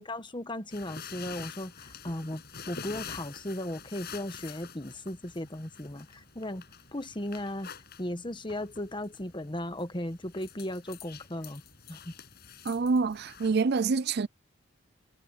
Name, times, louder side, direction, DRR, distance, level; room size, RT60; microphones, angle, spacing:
voice 1, 0.0-2.4 2.7-6.6 6.9-7.7 8.0-11.6 11.9-12.1, left 1 dB, 25° left, 1.3 m, -36 dB
sound 1, 0.7-13.5, left 6 dB, 55° left, 7.1 m, -47 dB
voice 2, 12.6-14.3, right 4 dB, 55° right, 0.5 m, -26 dB
head